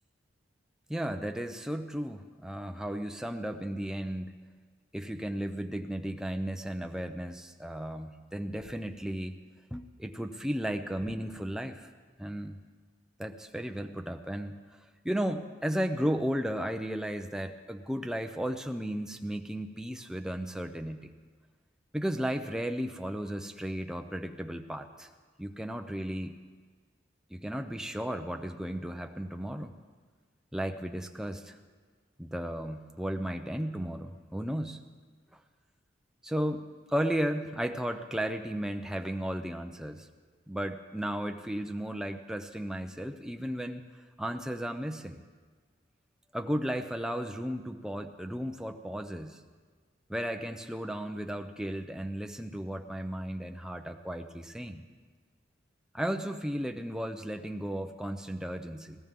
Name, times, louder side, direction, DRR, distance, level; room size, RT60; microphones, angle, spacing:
voice 1, 0.9-4.3 4.9-9.4 9.7-11.9 12.2-12.6 13.2-14.6 15.0-21.1 21.9-25.1 25.4-26.4 27.3-29.8 30.5-31.6 32.2-34.8 36.2-40.1 40.5-43.8 44.2-45.2 46.3-49.4 50.1-54.8 55.9-59.0, equal, 5° right, 6 dB, 0.5 m, -34 dB
sound 1, 8.6-9.2 11.0-11.8, equal, 40° left, 6.0 m, -53 dB
20.0 x 16.5 x 3.6 m, 1.5 s
head